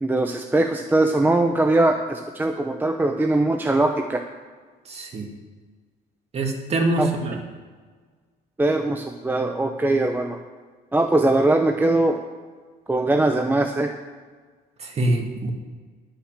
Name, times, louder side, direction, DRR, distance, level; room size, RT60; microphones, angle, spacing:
voice 1, 0.0-4.2 7.0-7.1 8.6-10.4 10.9-12.2 12.9-13.9, right 2 dB, 10° right, 5 dB, 0.7 m, -21 dB
voice 2, 4.9-5.3 6.3-7.4 14.8-15.5, right 2 dB, 40° right, 2 dB, 2.1 m, -24 dB
11.5 x 5.9 x 7.5 m, 1.5 s
cardioid pair, 110°, 17 cm